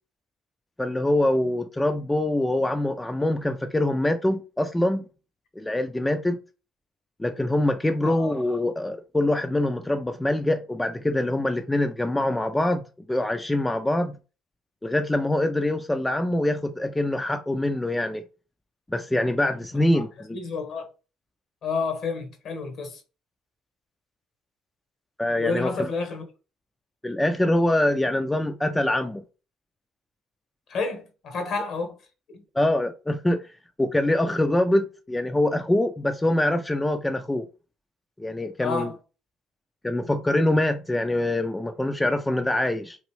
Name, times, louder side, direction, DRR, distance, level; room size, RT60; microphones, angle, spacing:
voice 1, 0.8-5.0 5.6-6.4 7.2-12.8 13.1-14.1 14.8-18.2 18.9-20.4 25.2-25.9 27.0-29.2 32.5-33.4 33.8-37.5 38.2-38.9 39.8-43.0, left 1 dB, 10° left, 0.4 m, -24 dB
voice 2, 20.3-20.9 21.6-23.0 25.4-26.3 30.7-32.0 32.3-32.4 38.6-39.0, left 4 dB, 60° left, 1.0 m, -30 dB
3.0 x 2.5 x 3.1 m
hypercardioid pair, 60°, 0 cm